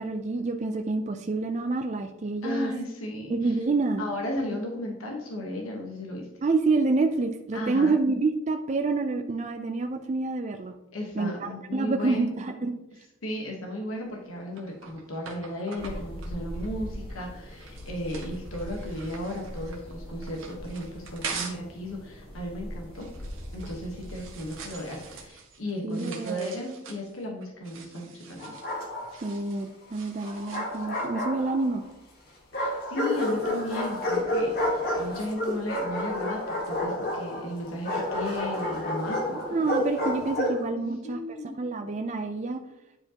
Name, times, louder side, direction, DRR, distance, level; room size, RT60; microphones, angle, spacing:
voice 1, 0.0-2.7 3.3-4.0 6.4-10.8 11.2-12.8 25.8-26.5 29.2-31.8 39.5-41.2 41.6-42.6, right 3 dB, 35° right, 5 dB, 0.4 m, -27 dB
voice 2, 2.4-3.5 4.0-6.3 7.5-7.9 10.9-12.4 13.2-23.1 23.5-28.6 32.5-39.6 40.8-41.6, left 1 dB, 80° left, 0 dB, 1.2 m, -35 dB
sound 1, 14.0-21.7 22.1-31.1, right 5 dB, 70° right, 1.2 m, -44 dB
sound 2, 15.8-25.3, equal, 25° left, 1.7 m, -41 dB
Bark, 28.4-29.3 30.2-31.8 32.5-40.6, left 1 dB, 45° left, 1.5 m, -30 dB
9.6 x 4.8 x 2.9 m, 0.89 s
head